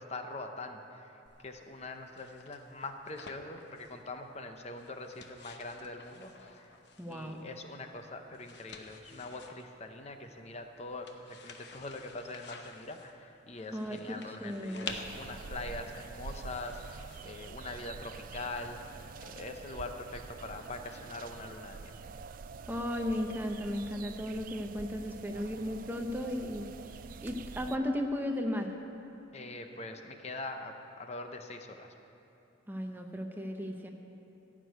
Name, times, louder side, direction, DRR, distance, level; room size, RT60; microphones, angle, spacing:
voice 1, 0.0-6.8 7.1-18.8 19.2-21.9 29.3-31.9, left 2 dB, 35° left, 6 dB, 0.7 m, -43 dB
sound 1, 1.3-18.5, left 4 dB, 60° left, 0.9 m, -51 dB
voice 2, 7.0-7.4 13.7-14.9 22.7-26.7 27.2-28.7 32.7-33.9, left 1 dB, 10° right, 3 dB, 0.7 m, -35 dB
sound 2, 14.9-27.8, right 5 dB, 45° right, 0.3 m, -46 dB
14.5 x 6.1 x 9.1 m, 2.8 s
head